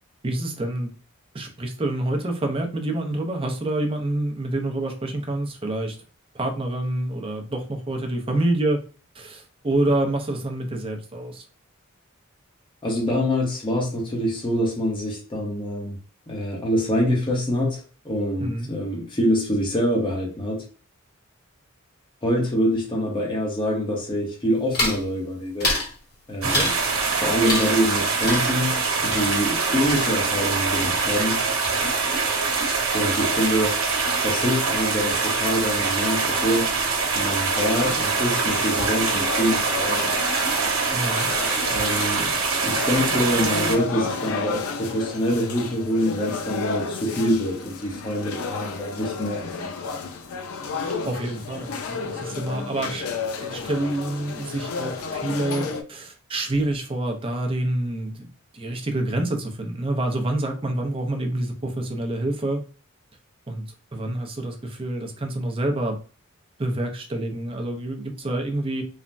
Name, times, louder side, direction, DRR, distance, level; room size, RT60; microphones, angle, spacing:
voice 1, 0.2-0.9 1.3-6.0 6.3-8.8 9.1-11.4 18.4-18.7 26.4-26.7 40.9-41.3 50.8-53.1 53.4-62.6 63.5-63.7 63.9-66.0 66.6-68.8, right 1 dB, 25° right, 3 dB, 0.5 m, -27 dB
voice 2, 12.8-16.0 16.3-20.6 22.2-25.7 26.3-26.7 27.2-31.4 32.9-33.9 34.2-36.7 37.1-40.1 41.7-42.3 42.6-50.1, equal, 25° left, -2 dB, 0.7 m, -25 dB
sound 1, 24.7-25.1 25.6-25.9 26.5-26.9 27.4-28.0 28.2-30.5 30.8-31.4 31.6-32.2, left 2 dB, 45° left, 1.1 m, -28 dB
sound 2, 26.4-43.8, right 4 dB, 75° right, 0.9 m, -24 dB
sound 3, 37.5-55.8, left 5 dB, 90° left, 0.5 m, -32 dB
3.2 x 2.1 x 2.5 m, 0.37 s
head